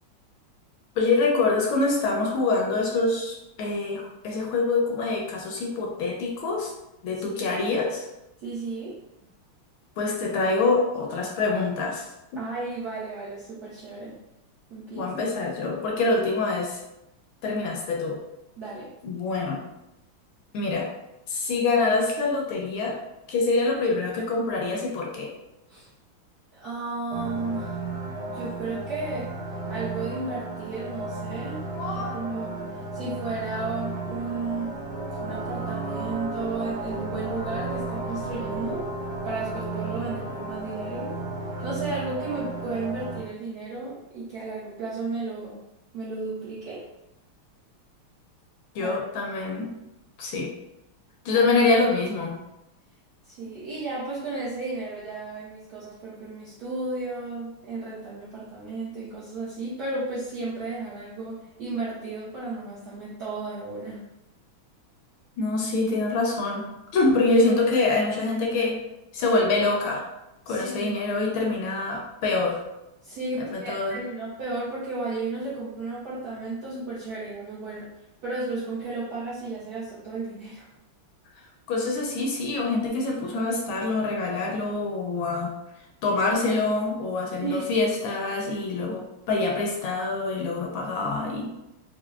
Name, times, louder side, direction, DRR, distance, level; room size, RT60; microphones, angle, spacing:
voice 1, 1.0-6.7 7.0-8.1 10.0-12.4 15.0-16.8 17.4-18.2 19.0-19.6 20.5-20.9 21.3-23.0 23.3-25.3 31.7-32.3 48.7-49.8 50.2-50.5 51.2-52.3 65.4-68.8 69.1-70.0 70.5-72.6 73.4-74.0 81.7-85.5 86.0-91.5, left 3 dB, 75° left, 0 dB, 1.2 m, -25 dB
voice 2, 7.2-7.6 8.4-9.0 9.2-9.3 12.4-14.1 14.7-15.2 18.6-18.9 25.7-25.9 26.6-27.9 28.3-29.3 29.7-32.6 32.9-34.7 35.2-38.8 39.2-41.1 41.6-45.6 45.9-46.8 48.8-49.0 51.3-51.5 53.2-64.0 70.5-71.0 73.0-77.9 78.2-80.7 87.4-87.7, right 3 dB, 75° right, -7 dB, 0.9 m, -33 dB
sound 1, 27.1-43.2, right 2 dB, 60° right, 1.3 m, -33 dB
4.3 x 2.0 x 2.3 m, 0.91 s
omnidirectional pair, 2.4 m